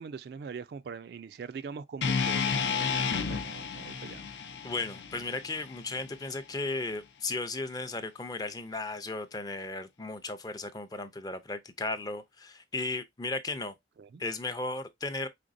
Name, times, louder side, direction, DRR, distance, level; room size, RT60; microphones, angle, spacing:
voice 1, 0.0-4.2 14.0-14.2, right 5 dB, 60° right, 0.3 m, -42 dB
sound 1, 2.0-6.2, left 6 dB, 75° left, 0.6 m, -32 dB
voice 2, 4.6-13.7 14.2-15.3, left 3 dB, 20° left, 0.5 m, -35 dB
5.0 x 3.4 x 2.5 m
head